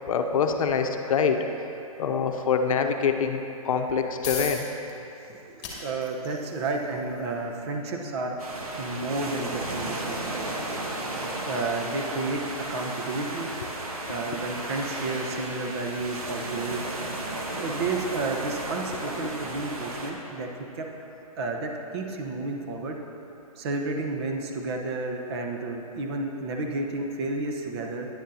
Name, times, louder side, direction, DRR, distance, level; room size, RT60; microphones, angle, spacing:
voice 1, 0.1-1.4 2.0-3.4 3.6-4.6, left 6 dB, 65° left, 5 dB, 0.7 m, -25 dB
sound 1, 4.2-18.6, left 5 dB, 25° left, 1.8 m, -45 dB
voice 2, 5.5-8.4 8.8-10.5 11.4-12.4 12.7-13.5 14.1-16.8 17.3-20.9 21.4-23.0 23.6-28.1, right 3 dB, 45° right, 2 dB, 1.0 m, -31 dB
sound 2, 8.4-20.1, right 2 dB, 75° right, 1.4 m, -34 dB
10.0 x 10.0 x 2.8 m, 2.9 s
hypercardioid pair, 140°, 19 cm